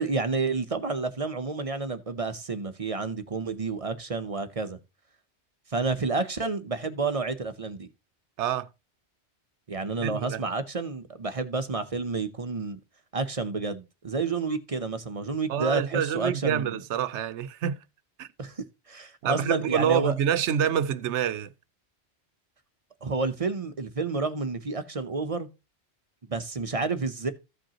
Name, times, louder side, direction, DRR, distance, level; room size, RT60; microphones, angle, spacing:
voice 1, 0.0-4.8 5.7-7.9 9.7-12.8 13.1-16.8 18.4-20.1 23.0-25.5 26.3-27.3, right 3 dB, 35° right, 0.7 m, -30 dB
voice 2, 8.4-8.7 10.0-10.4 15.5-17.8 18.2-18.3 19.2-21.5, right 9 dB, 90° right, 0.9 m, -27 dB
15.0 x 5.2 x 2.9 m
omnidirectional pair, 1.1 m